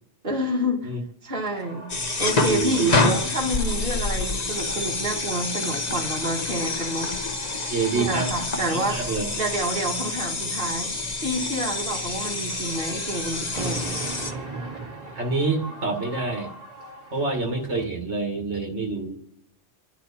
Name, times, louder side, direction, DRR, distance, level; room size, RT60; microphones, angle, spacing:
voice 1, 0.2-0.9 1.2-1.9 2.2-7.2 7.9-9.1 9.4-13.9, equal, 50° right, 2.3 m, -28 dB
sound 1, 1.2-17.8, right 2 dB, 35° right, 2.2 m, -41 dB
sound 2, 1.9-14.3, left 3 dB, 35° left, 1.2 m, -27 dB
voice 2, 2.5-2.9 7.7-8.3 8.7-9.2 15.1-16.5 17.1-19.2, right 3 dB, 70° right, 2.4 m, -27 dB
29.0 x 10.5 x 4.3 m
omnidirectional pair, 1.2 m